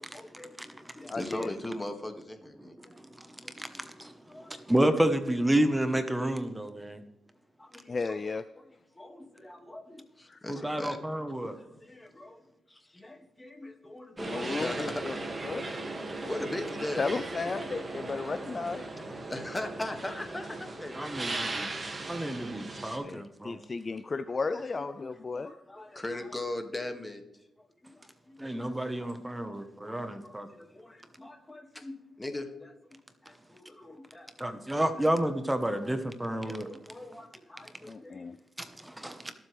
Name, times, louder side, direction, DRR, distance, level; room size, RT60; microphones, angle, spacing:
voice 1, 0.0-3.9 4.3-4.9 7.6-8.3 8.6-11.0 11.4-17.3 18.0-18.5 19.1-21.8 23.5-34.3 35.0-35.1 35.7-35.9 36.4-38.5 39.1-39.2, left 1 dB, 20° left, 2.1 m, -42 dB
voice 2, 1.1-1.5 7.9-8.5 10.3-10.4 14.2-15.2 15.4-15.7 17.0-19.0 23.0-25.5 37.9-38.4, left 4 dB, 40° left, 0.4 m, -34 dB
voice 3, 3.0-7.0 10.5-11.5 20.9-21.7 22.0-23.6 28.4-30.5 34.4-36.7 38.6-39.3, right 1 dB, 10° right, 1.2 m, -30 dB
sound 1, 14.2-23.0, right 2 dB, 30° right, 2.1 m, -38 dB
21.5 x 7.8 x 3.4 m
cardioid pair, 75°, 0 cm